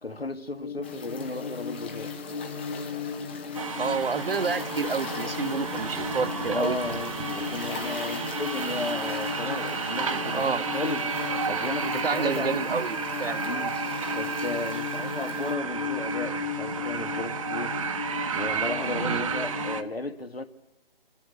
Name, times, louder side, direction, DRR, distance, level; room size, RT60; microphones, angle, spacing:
voice 1, 0.0-2.1 6.5-11.0 11.5-12.6 13.4-13.8 14.1-17.8 18.3-20.4, left 3 dB, 80° left, 1.8 m, -34 dB
sound 1, 0.6-19.8, left 6 dB, 60° left, 1.7 m, -36 dB
sound 2, 0.8-15.5, left 5 dB, 10° left, 0.6 m, -42 dB
sound 3, 3.5-19.8, right 5 dB, 35° right, 1.1 m, -32 dB
voice 2, 3.8-6.8 10.3-10.6 11.8-13.4 19.0-19.3, right 5 dB, 70° right, 0.7 m, -29 dB
26.5 x 11.5 x 9.9 m
figure-of-eight pair, 145°, 30 cm